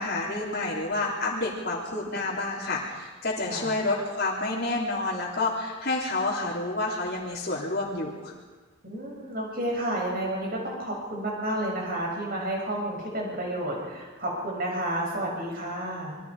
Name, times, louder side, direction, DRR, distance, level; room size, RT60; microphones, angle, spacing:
voice 1, 0.0-8.3, left 2 dB, 50° left, -6 dB, 3.5 m, -29 dB
voice 2, 8.8-16.2, right 1 dB, 50° right, -1 dB, 7.2 m, -31 dB
27.5 x 23.0 x 5.0 m, 1.3 s
head